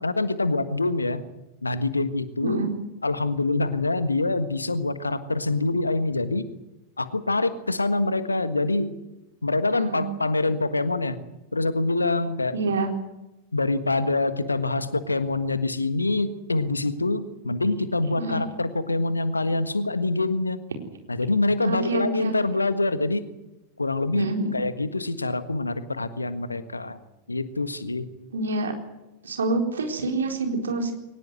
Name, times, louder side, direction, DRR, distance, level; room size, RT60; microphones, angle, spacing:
voice 1, 0.0-1.2 1.6-2.7 3.0-6.5 7.0-8.9 9.4-11.2 11.5-12.6 13.5-20.6 21.1-23.2 23.8-27.0 27.3-28.1, left 2 dB, 80° left, 12 dB, 1.5 m, -25 dB
voice 2, 2.4-2.7 9.9-10.1 12.5-12.9 18.2-18.4 21.6-22.3 24.1-24.6 28.3-28.7 29.2-30.9, right 3 dB, 70° right, 3 dB, 4.1 m, -27 dB
22.5 x 19.0 x 7.8 m, 0.98 s
figure-of-eight pair, 90°, 0 cm